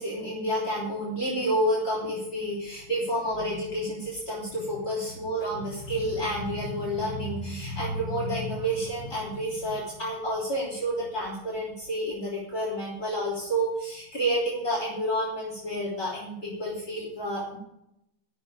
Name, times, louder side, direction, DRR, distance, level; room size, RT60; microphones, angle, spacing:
voice 1, 0.0-17.6, equal, 50° left, -6 dB, 3.8 m, -29 dB
14.0 x 6.7 x 8.4 m, 0.83 s
omnidirectional pair, 2.0 m